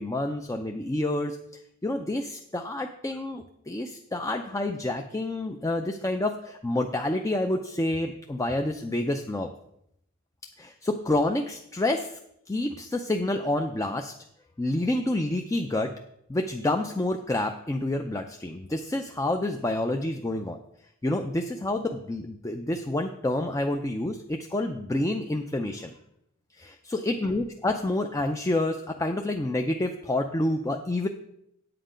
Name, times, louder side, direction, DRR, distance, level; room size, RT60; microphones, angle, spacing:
voice 1, 0.0-1.4 1.8-9.5 10.6-12.2 12.5-14.1 14.6-15.9 16.3-20.6 21.0-25.9 26.6-31.1, left 1 dB, 15° left, 5 dB, 0.4 m, -28 dB
8.8 x 7.8 x 5.0 m, 0.77 s
head